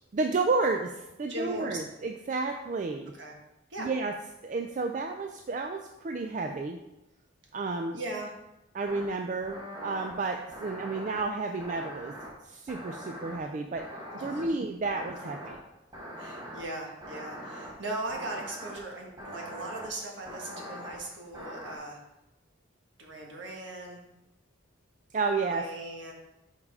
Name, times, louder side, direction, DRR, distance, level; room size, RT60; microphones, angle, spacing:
voice 1, 0.1-3.1 3.8-4.1 4.4-6.8 7.5-8.0 8.7-12.1 12.4-13.9 14.2-15.6 25.1-25.7, right 3 dB, 40° right, 5 dB, 0.3 m, -31 dB
voice 2, 1.3-1.9 3.1-3.3 3.7-3.9 7.9-8.3 14.1-14.6 16.2-22.0 23.0-24.0 25.4-26.1, right 2 dB, 65° right, 0 dB, 1.4 m, -39 dB
sound 1, 8.8-9.1 9.4-10.1 10.5-11.2 11.6-12.3 12.7-13.4 13.8-14.5 14.8-15.5 15.9-16.6 17.0-17.7 18.1-18.8 19.2-19.9 20.3-21.0 21.3-21.8, equal, 20° right, 1.2 m, -42 dB
5.4 x 4.9 x 4.8 m, 0.92 s
head